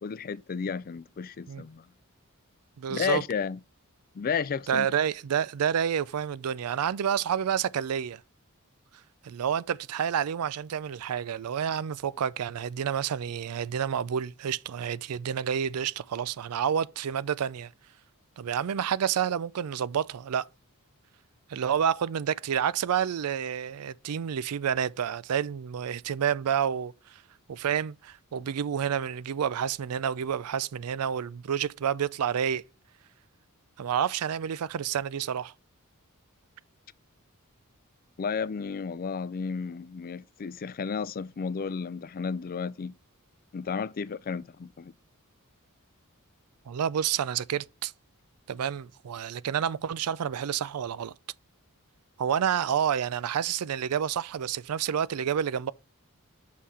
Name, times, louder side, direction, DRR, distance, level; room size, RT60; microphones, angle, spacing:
voice 1, 0.0-1.9 2.9-3.6 4.1-4.9 38.2-42.9 43.5-44.9, left 6 dB, 40° left, 0.4 m, -32 dB
voice 2, 2.8-3.2 4.7-8.2 9.2-17.7 18.4-20.5 21.5-27.2 27.5-32.6 33.8-35.5 46.7-47.9 48.5-51.1 52.2-55.7, right 8 dB, 80° right, 0.4 m, -29 dB
6.5 x 5.6 x 4.1 m
head